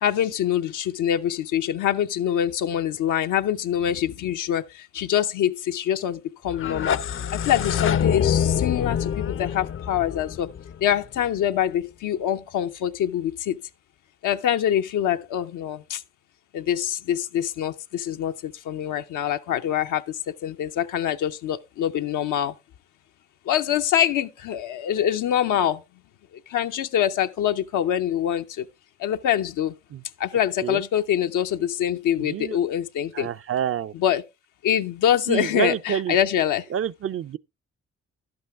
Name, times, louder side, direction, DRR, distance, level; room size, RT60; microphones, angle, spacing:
voice 1, 0.0-7.0 7.3-10.5 10.8-13.6 14.2-16.0 16.5-20.2 20.4-22.5 23.5-25.8 26.5-28.7 29.0-29.7 30.2-33.3 33.9-34.2 34.6-36.6, left 10 dB, 85° left, 0.6 m, -25 dB
sound 1, 6.5-11.4, left 8 dB, 45° left, 0.5 m, -26 dB
voice 2, 32.2-32.6 33.1-33.9 35.3-36.2 36.7-37.4, right 9 dB, 45° right, 0.5 m, -27 dB
11.0 x 7.9 x 3.4 m
supercardioid pair, 50°, 30 cm